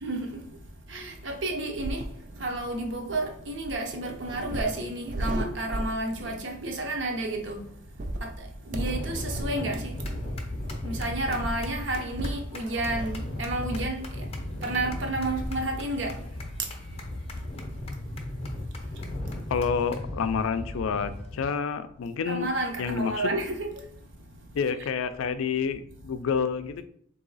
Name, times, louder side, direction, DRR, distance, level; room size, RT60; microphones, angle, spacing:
voice 1, 0.0-7.8 8.2-10.2 10.8-17.0 17.3-17.4 18.3-19.4 22.3-23.9 24.3-24.4, right 2 dB, 65° right, 0.7 m, -32 dB
sound 1, 1.7-6.5 7.9-14.1 14.8-15.7 16.1-16.2 17.4-18.0 19.0-19.1 19.2-19.4 19.7-20.1, right 1 dB, 40° right, 0.4 m, -37 dB
sound 2, 8.7-21.4, left 1 dB, 30° left, 0.5 m, -36 dB
voice 2, 19.5-22.5 22.8-23.3 24.5-26.8, left 6 dB, 80° left, 0.4 m, -28 dB
3.8 x 2.7 x 4.0 m
head